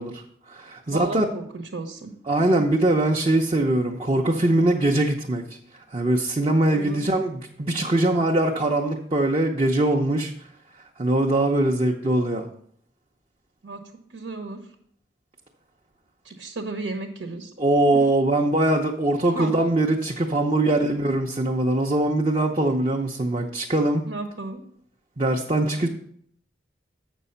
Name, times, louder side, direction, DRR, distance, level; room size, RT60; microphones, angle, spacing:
voice 1, 0.0-1.3 2.3-10.5 11.0-12.5 17.6-24.0 25.2-25.9, right 1 dB, 30° right, 0 dB, 0.6 m, -22 dB
voice 2, 0.9-2.1 2.4-2.5 6.7-7.0 13.6-13.8 14.1-14.6 16.2-17.5 17.9-18.0 19.3-19.6 24.0-24.6, right 3 dB, 85° right, 4 dB, 1.1 m, -34 dB
7.8 x 6.1 x 5.6 m, 0.66 s
head